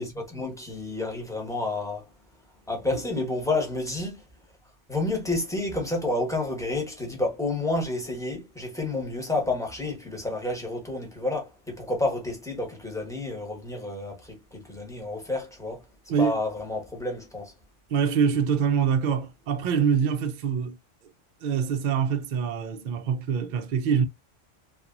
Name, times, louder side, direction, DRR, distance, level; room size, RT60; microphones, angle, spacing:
voice 1, 0.0-2.1 2.7-4.2 4.9-15.8 16.2-17.5, left 2 dB, 5° left, 0.8 m, -30 dB
voice 2, 17.9-20.8 21.4-24.1, right 7 dB, 60° right, 0.5 m, -25 dB
2.8 x 2.5 x 2.3 m
omnidirectional pair, 1.2 m